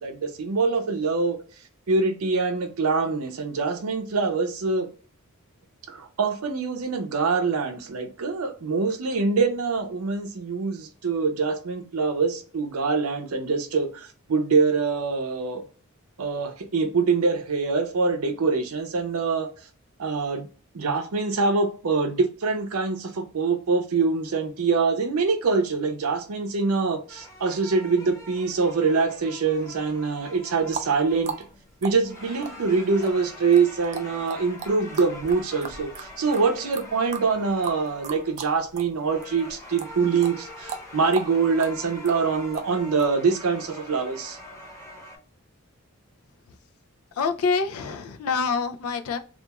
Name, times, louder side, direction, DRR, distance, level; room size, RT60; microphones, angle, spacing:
voice 1, 0.0-1.4 1.9-4.9 5.9-15.6 16.2-19.5 20.0-20.5 20.7-31.3 31.8-44.4, right 4 dB, 90° right, 0.6 m, -24 dB
sound 1, 27.1-45.2, left 1 dB, 15° left, 0.8 m, -44 dB
sound 2, 30.6-39.0 39.2-43.1, right 6 dB, 30° right, 0.3 m, -37 dB
voice 2, 47.1-49.2, left 4 dB, 80° left, 0.4 m, -26 dB
2.4 x 2.3 x 2.8 m
head